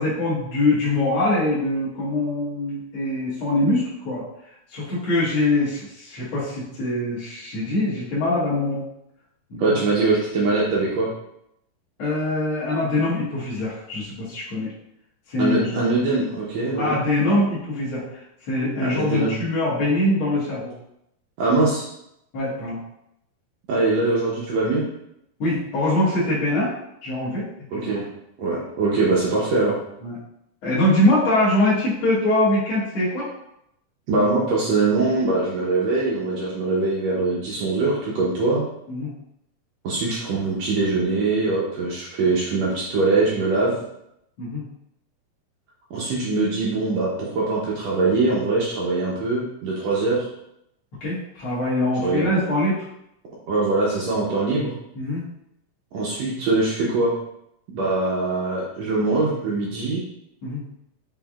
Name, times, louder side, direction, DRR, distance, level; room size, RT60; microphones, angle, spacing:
voice 1, 0.0-4.2 4.7-8.8 9.5-9.8 12.0-14.7 15.3-15.9 16.8-20.7 22.3-22.8 25.4-26.7 27.0-27.5 27.7-28.0 30.0-30.2 30.6-33.3 38.9-39.1 44.4-44.6 51.0-52.8 54.5-54.6 54.9-55.2 60.4-60.6, left 1 dB, 55° left, -9 dB, 1.6 m, -23 dB
voice 2, 9.6-11.1 15.4-17.0 18.8-19.3 21.4-21.9 23.7-24.8 27.7-28.1 28.4-29.8 34.1-38.6 39.8-43.8 45.9-50.3 52.0-52.2 53.5-54.7 55.9-57.1 57.7-60.0, right 3 dB, 80° right, -4 dB, 1.5 m, -22 dB
6.0 x 3.4 x 2.3 m, 0.80 s
omnidirectional pair, 3.9 m